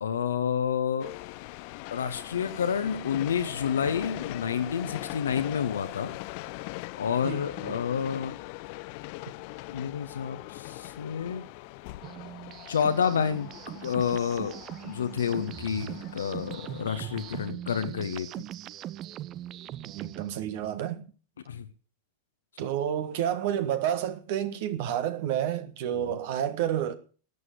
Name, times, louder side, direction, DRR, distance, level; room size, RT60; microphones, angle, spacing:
voice 1, 0.0-1.1 1.9-6.1 7.0-8.4 9.7-11.5 12.7-13.5 13.7-14.5 14.8-18.3 21.5-21.7 26.0-26.2, left 7 dB, 65° left, 1.1 m, -29 dB
sound 1, 1.0-17.5, left 21 dB, 45° left, 0.6 m, -41 dB
voice 2, 7.2-7.7 19.9-21.0 22.6-26.9, right 10 dB, 50° right, 1.6 m, -30 dB
sound 2, 12.0-20.3, right 12 dB, 35° right, 0.6 m, -40 dB
13.5 x 9.6 x 6.7 m
figure-of-eight pair, 90°, 0 cm